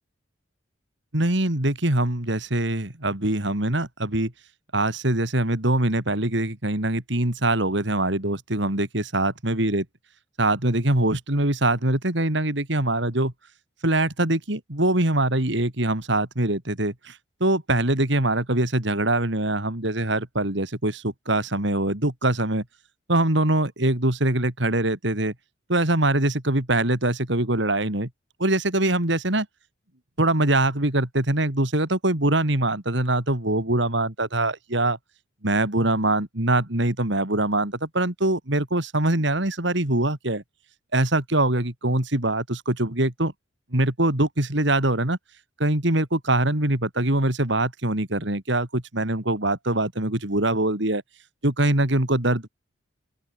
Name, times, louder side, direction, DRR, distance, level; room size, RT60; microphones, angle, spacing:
voice 1, 1.1-4.3 4.7-9.8 10.4-13.3 13.8-22.6 23.1-25.3 25.7-28.1 28.4-29.5 30.2-35.0 35.4-40.4 40.9-43.3 43.7-45.2 45.6-51.0 51.4-52.5, right 1 dB, 60° right, 3.1 m, -23 dB
open air
head